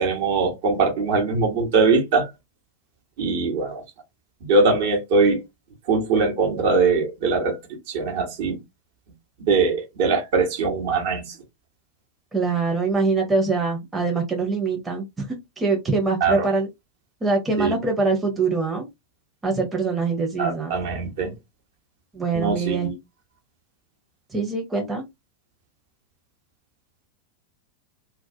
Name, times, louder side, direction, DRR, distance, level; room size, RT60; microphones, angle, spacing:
voice 1, 0.0-2.3 3.2-3.8 4.5-5.4 5.9-7.6 7.9-8.6 9.5-11.3 16.2-16.5 17.6-17.7 20.4-21.3 22.3-22.9, right 4 dB, 50° right, 1.0 m, -21 dB
voice 2, 12.3-15.3 15.6-16.7 17.2-18.9 19.4-20.8 22.1-22.9 24.3-25.0, right 4 dB, 15° right, 0.7 m, -23 dB
2.2 x 2.2 x 2.7 m
figure-of-eight pair, 90°, 0 cm